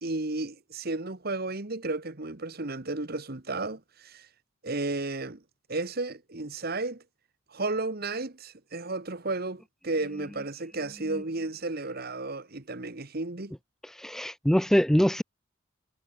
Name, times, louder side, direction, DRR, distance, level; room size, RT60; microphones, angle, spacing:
voice 1, 0.0-4.3 4.6-5.4 5.7-7.0 7.5-13.5, right 2 dB, 50° right, 1.6 m, -33 dB
voice 2, 14.0-15.2, equal, ahead, 0.3 m, -23 dB
head